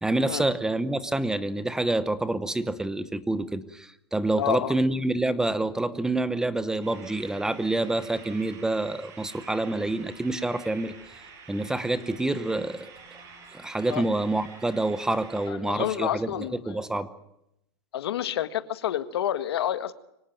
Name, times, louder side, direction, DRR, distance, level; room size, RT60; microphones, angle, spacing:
voice 1, 0.0-10.9 11.5-12.9 13.5-17.1, right 2 dB, 5° right, 13 dB, 0.9 m, -27 dB
voice 2, 4.4-4.7 13.9-14.0 15.5-16.8 17.9-19.9, left 11 dB, 85° left, 12 dB, 1.8 m, -29 dB
sound 1, 6.8-15.5, right 5 dB, 25° right, 6.6 m, -48 dB
24.5 x 18.0 x 9.1 m, 0.82 s
supercardioid pair, 160°, 13 cm